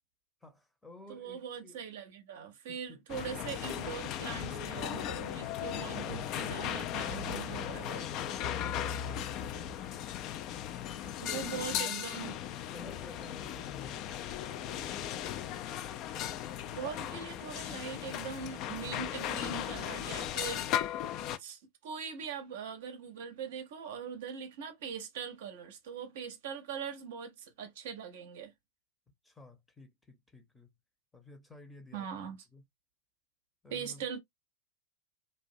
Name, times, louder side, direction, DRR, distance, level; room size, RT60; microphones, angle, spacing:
voice 1, 0.4-1.8 2.7-3.0 8.5-9.2 11.0-12.4 12.7-14.1 14.4-15.0 29.2-30.7 31.1-32.6 33.6-34.1, left 2 dB, 5° left, 0.7 m, -51 dB
voice 2, 1.1-8.1 11.2-12.4 16.7-20.9 21.4-28.5 31.9-32.4 33.7-34.2, right 7 dB, 55° right, 0.6 m, -41 dB
sound 1, 3.1-21.4, left 11 dB, 40° left, 0.3 m, -37 dB
sound 2, 4.4-9.7, left 4 dB, 60° left, 1.2 m, -44 dB
2.6 x 2.1 x 2.6 m
figure-of-eight pair, 90°, 0 cm